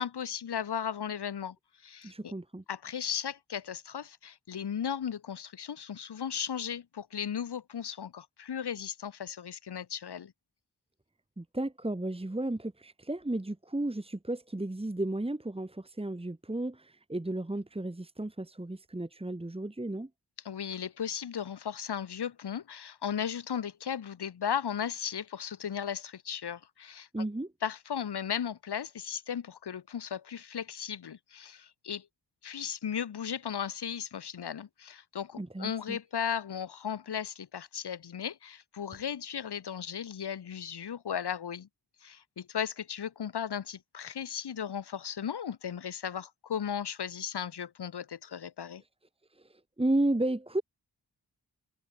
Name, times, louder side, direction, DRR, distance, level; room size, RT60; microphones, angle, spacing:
voice 1, 0.0-1.6 1.8-2.3 2.7-10.3 20.4-27.1 27.6-32.1 32.4-41.7 42.0-48.8, left 8 dB, 85° left, 1.3 m, -36 dB
voice 2, 2.0-2.6 11.4-20.1 27.1-27.5 35.4-36.0 49.3-50.6, right 1 dB, 15° right, 2.0 m, -33 dB
wide cardioid pair, 95°, 39 cm